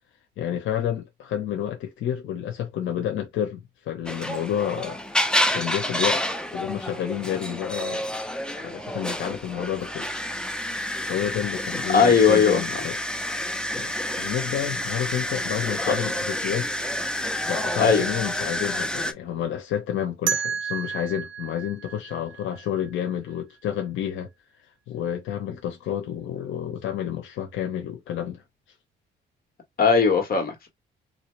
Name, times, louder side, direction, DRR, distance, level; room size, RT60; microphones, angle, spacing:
voice 1, 0.4-5.0 5.5-6.3 6.5-8.1 8.5-10.1 11.1-13.0 13.7-16.7 17.5-24.3 24.9-28.4, left 10 dB, 85° left, 0.8 m, -30 dB
sound 1, 4.1-19.1, left 1 dB, 5° left, 0.6 m, -29 dB
voice 2, 11.9-12.6 15.9-16.0 17.8-18.0 29.8-30.7, left 5 dB, 50° left, 1.5 m, -18 dB
sound 2, 20.3-23.1, right 8 dB, 90° right, 0.5 m, -31 dB
3.2 x 2.7 x 3.1 m
cardioid pair, 90°, 20 cm